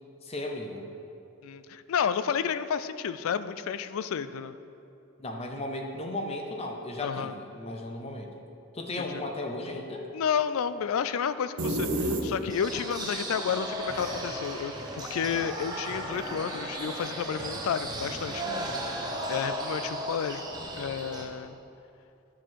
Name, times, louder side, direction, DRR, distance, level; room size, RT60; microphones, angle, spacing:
voice 1, 0.2-0.8 5.2-8.5 8.7-10.1 18.4-18.9, left 1 dB, 30° left, 2 dB, 0.7 m, -36 dB
voice 2, 1.4-4.5 7.0-7.3 9.1-9.2 10.1-18.4 19.0-20.4 20.8-21.6, left 7 dB, 75° left, 13 dB, 0.4 m, -31 dB
sound 1, 11.6-12.8, right 1 dB, 85° right, 0.9 m, -29 dB
sound 2, 12.5-21.2, right 1 dB, 20° right, 0.8 m, -35 dB
10.0 x 6.3 x 4.6 m, 2.7 s
head